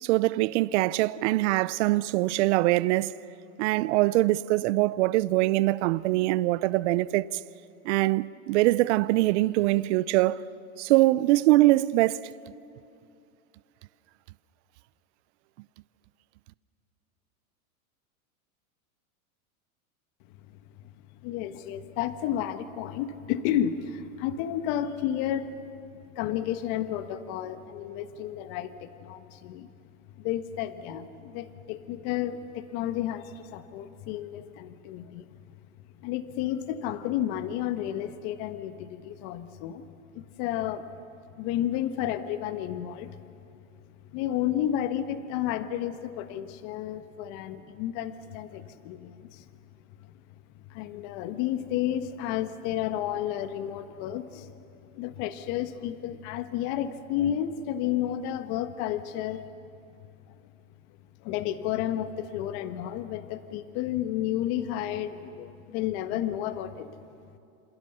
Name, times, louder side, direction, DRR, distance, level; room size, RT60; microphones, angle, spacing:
voice 1, 0.0-3.1 3.6-7.3 7.8-10.4 10.8-12.2, right 18 dB, 55° right, 0.7 m, -23 dB
voice 2, 21.2-25.7 26.1-29.7 30.2-35.3 36.0-39.8 40.1-40.9 41.3-43.2 44.1-49.5 50.5-54.6 54.9-59.4 60.3-60.4 61.2-66.9, left 11 dB, 45° left, 1.4 m, -31 dB
27.5 x 27.0 x 6.8 m
supercardioid pair, 135°, 43 cm